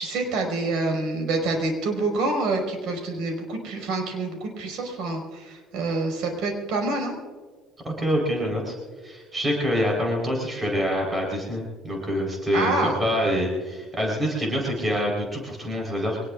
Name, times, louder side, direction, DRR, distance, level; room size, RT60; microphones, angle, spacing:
voice 1, 0.0-7.2 12.5-13.0, right 2 dB, 70° right, 2 dB, 5.4 m, -27 dB
voice 2, 7.8-8.7 9.0-16.2, equal, 15° right, -1 dB, 4.4 m, -26 dB
24.5 x 19.5 x 2.6 m, 1.5 s
cardioid pair, 135°, 0 cm